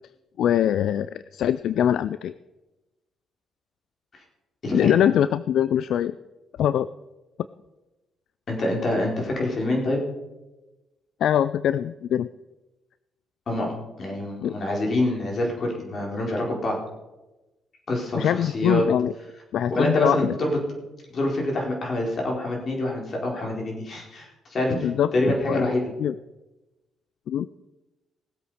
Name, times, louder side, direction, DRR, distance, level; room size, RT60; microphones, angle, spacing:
voice 1, 0.4-2.3 4.7-6.2 6.6-6.9 11.2-12.3 14.4-14.5 18.1-19.1 19.5-20.4 24.8-25.1 25.5-25.7 26.0-26.1 27.3-27.6, left 10 dB, 75° left, 15 dB, 0.3 m, -22 dB
voice 2, 8.5-10.0 13.5-16.8 17.9-18.8 19.7-20.5 21.1-25.9, left 1 dB, 50° left, -1 dB, 4.4 m, -26 dB
19.0 x 8.1 x 5.0 m, 1.0 s
cardioid pair, 90°, 0 cm